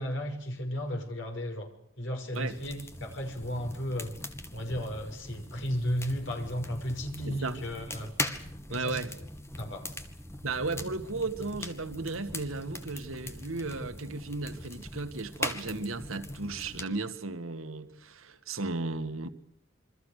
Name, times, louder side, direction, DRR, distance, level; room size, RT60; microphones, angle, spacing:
voice 1, 0.0-1.7 2.0-4.1 4.5-8.1 8.7-9.0 9.6-9.8, equal, 60° left, 6.2 m, -34 dB
sound 1, 2.3-16.8, left 1 dB, 15° left, 2.3 m, -40 dB
voice 2, 7.3-7.7 8.7-9.1 10.4-19.3, right 3 dB, 90° right, 2.1 m, -35 dB
28.0 x 24.5 x 6.7 m
head